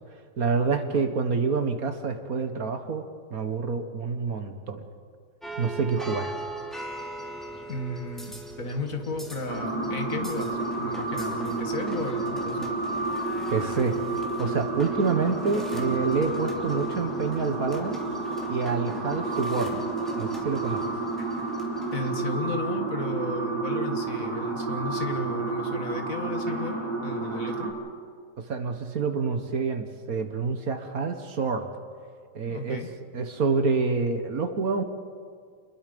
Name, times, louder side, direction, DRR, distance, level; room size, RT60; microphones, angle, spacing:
voice 1, 0.4-4.9 5.6-6.3 13.5-14.0 14.4-18.0 18.5-19.7 20.2-20.8 28.4-31.7 32.4-32.9 33.1-34.8, right 4 dB, 55° right, 7 dB, 1.8 m, -27 dB
sound 1, 5.4-22.1, right 1 dB, ahead, 3.1 m, -41 dB
voice 2, 7.7-12.8 21.9-27.7 32.4-32.9, left 2 dB, 50° left, 5 dB, 2.0 m, -34 dB
sound 2, 9.5-27.7, right 3 dB, 85° right, 4.8 m, -30 dB
29.0 x 21.0 x 5.3 m, 2.1 s
omnidirectional pair, 1.9 m